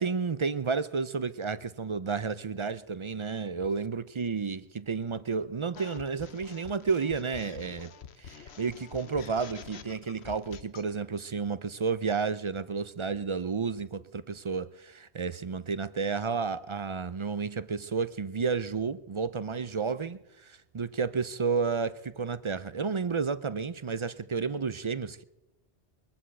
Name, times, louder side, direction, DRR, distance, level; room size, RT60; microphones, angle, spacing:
voice 1, 0.0-7.9 8.2-25.2, right 5 dB, 40° right, 0.4 m, -31 dB
sound 1, 5.7-10.9, left 8 dB, 70° left, 1.2 m, -47 dB
22.0 x 7.9 x 7.8 m
omnidirectional pair, 1.1 m